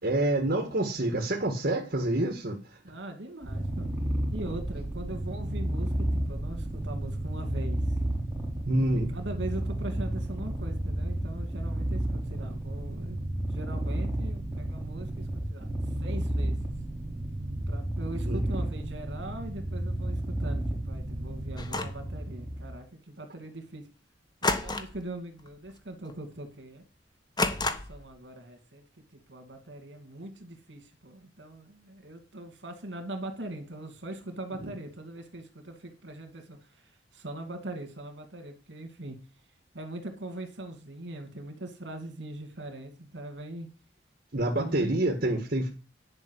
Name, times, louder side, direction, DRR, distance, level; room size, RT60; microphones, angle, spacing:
voice 1, 0.0-2.8 8.6-9.1 18.2-18.4 34.6-34.7 44.3-45.7, right 1 dB, 55° right, 1.6 m, -27 dB
voice 2, 2.8-3.9 4.3-7.8 8.7-13.2 13.5-15.7 16.0-16.6 17.7-23.8 24.4-26.8 27.4-28.8 29.3-39.2 39.7-43.7 44.4-44.9, right 1 dB, 70° right, 2.5 m, -41 dB
Purr, 3.4-22.7, right 1 dB, 5° right, 4.6 m, -32 dB
sound 1, 21.6-22.1 24.4-25.1 25.4-25.7 26.1-26.2 27.4-28.1, left 3 dB, 25° left, 1.3 m, -30 dB
10.5 x 5.5 x 8.2 m
head